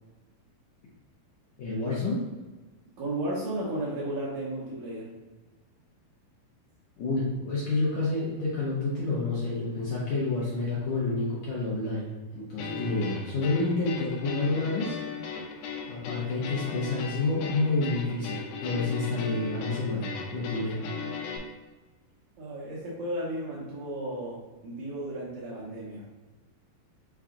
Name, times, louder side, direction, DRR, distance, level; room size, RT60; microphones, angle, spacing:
voice 1, 1.6-2.2 7.0-15.0 15.9-20.7, left 3 dB, 70° left, -6 dB, 1.8 m, -29 dB
voice 2, 3.0-5.1 22.4-26.0, right 1 dB, 70° right, -6 dB, 2.0 m, -34 dB
sound 1, 12.6-21.4, left 6 dB, 85° left, 2.4 m, -37 dB
5.9 x 2.3 x 3.6 m, 1.2 s
omnidirectional pair, 4.0 m